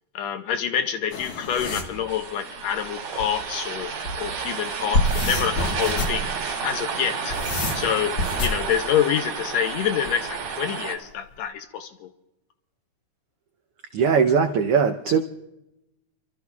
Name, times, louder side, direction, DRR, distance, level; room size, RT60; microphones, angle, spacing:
voice 1, 0.1-3.9 4.2-6.3 6.6-7.4 7.7-12.1, left 9 dB, 75° left, 8 dB, 1.7 m, -27 dB
sound 1, 1.1-1.9 3.2-3.3 3.8-4.2 4.7-6.3 7.0-8.6 10.1-10.5, left 2 dB, 50° left, 2.1 m, -27 dB
sound 2, 1.8-11.0, right 6 dB, 55° right, 2.3 m, -31 dB
voice 2, 13.9-15.2, right 6 dB, 85° right, 7 dB, 1.2 m, -20 dB
30.0 x 13.0 x 2.3 m, 0.91 s
omnidirectional pair, 3.5 m